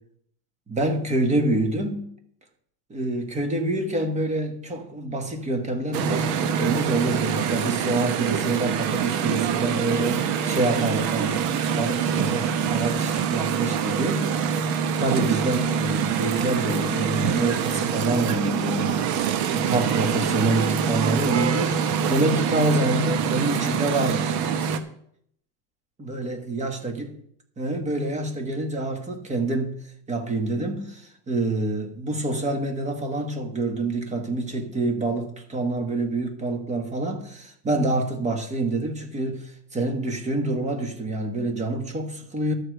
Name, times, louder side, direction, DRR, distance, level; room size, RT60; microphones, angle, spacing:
voice 1, 0.7-2.0 2.9-24.4 26.0-27.1 27.6-29.8 30.1-42.5, right 2 dB, 15° right, 1.4 m, -27 dB
sound 1, 5.9-24.8, right 7 dB, 35° right, 0.9 m, -25 dB
12.0 x 5.0 x 7.9 m
supercardioid pair, 165°, 49 cm